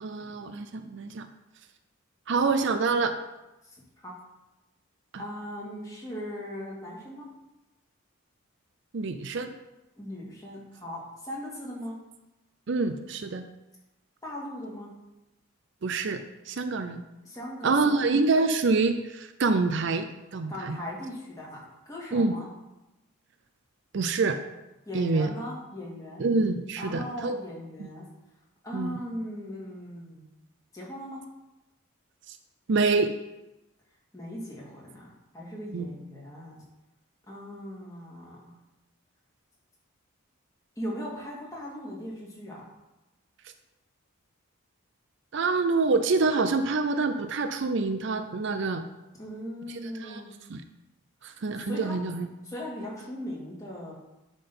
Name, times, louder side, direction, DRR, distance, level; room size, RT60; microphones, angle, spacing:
voice 1, 0.0-1.3 2.3-3.1 5.1-5.2 8.9-9.5 12.7-13.4 15.8-16.2 16.5-17.0 17.6-20.8 22.1-22.3 23.9-24.4 24.9-25.3 26.2-27.4 28.7-29.0 32.3-32.4 32.7-33.1 35.7-35.9 45.3-48.8 49.7-50.2 50.5-50.6 51.2-52.3, right 3 dB, 55° right, 9 dB, 0.5 m, -26 dB
voice 2, 5.2-7.3 10.0-11.9 14.2-14.9 17.2-18.0 20.5-22.5 24.9-26.2 26.8-28.1 28.6-30.2 30.7-31.2 34.1-36.6 37.3-38.5 40.8-42.6 49.2-50.3 51.5-52.0 52.4-53.9, equal, 15° left, -5 dB, 2.2 m, -38 dB
10.5 x 3.8 x 5.5 m, 0.96 s
head